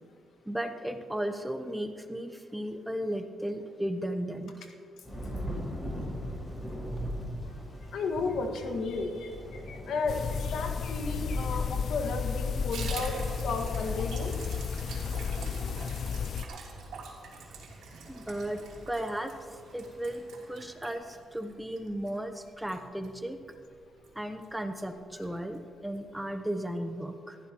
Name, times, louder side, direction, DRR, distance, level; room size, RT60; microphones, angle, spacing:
voice 1, 0.5-4.5 18.1-23.4 24.1-27.4, right 1 dB, 5° right, 7 dB, 0.9 m, -35 dB
Thunder / Rain, 5.0-20.6, equal, 15° left, 4.5 m, -42 dB
voice 2, 7.9-13.2 13.4-14.3, left 3 dB, 80° left, 4 dB, 1.7 m, -33 dB
sound 1, 10.1-16.4, left 6 dB, 55° left, 0.4 m, -33 dB
Water tap faucet / Bathtub (filling or washing), 12.7-23.7 24.0-24.1 24.4-24.5 24.8-25.3 25.5-25.6 25.9-26.0, right 4 dB, 85° right, 3.2 m, -45 dB
20.0 x 15.0 x 3.0 m, 2.2 s
cardioid pair, 105°, 0 cm